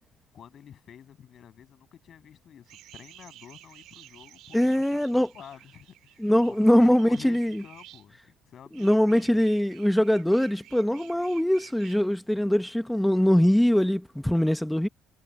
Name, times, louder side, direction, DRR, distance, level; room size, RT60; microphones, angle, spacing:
voice 1, 0.3-8.2 8.5-9.3, left 9 dB, 40° left, 7.2 m, -49 dB
sound 1, 2.7-8.1 8.7-12.0, right 14 dB, 65° right, 4.1 m, -52 dB
voice 2, 4.5-5.3 6.2-7.6 8.7-14.9, equal, ahead, 0.9 m, -22 dB
cardioid pair, 170°, 0 cm